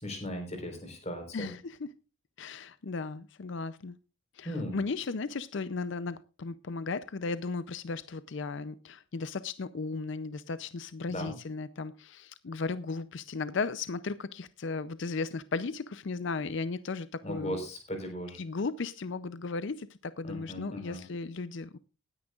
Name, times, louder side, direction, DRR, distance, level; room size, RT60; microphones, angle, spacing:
voice 1, 0.0-1.5 4.4-4.8 11.1-11.3 17.2-18.4 20.2-21.0, equal, 30° left, 4.2 m, -37 dB
voice 2, 1.3-1.9 2.4-4.0 4.3-17.6 18.4-21.8, left 4 dB, 60° left, 0.5 m, -36 dB
19.5 x 9.9 x 2.4 m
head